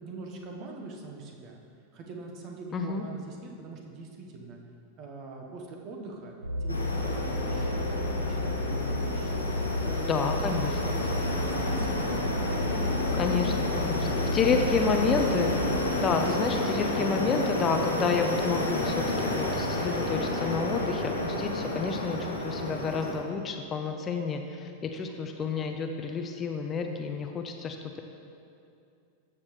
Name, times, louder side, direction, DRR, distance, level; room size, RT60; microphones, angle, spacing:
voice 1, 0.0-1.6 1.9-4.6 5.0-6.3 6.6-9.4 9.7-14.9 15.6-16.9, right 3 dB, 40° right, 1 dB, 1.3 m, -43 dB
voice 2, 2.7-3.0 10.1-10.9 13.2-15.5 16.0-28.0, left 5 dB, 25° left, 5 dB, 0.6 m, -30 dB
sound 1, 6.4-15.8, left 2 dB, 85° right, 0.6 m, -32 dB
sound 2, 6.7-23.1, left 1 dB, 80° left, 1.4 m, -31 dB
13.5 x 7.4 x 3.2 m, 2.5 s
figure-of-eight pair, 90°, 0 cm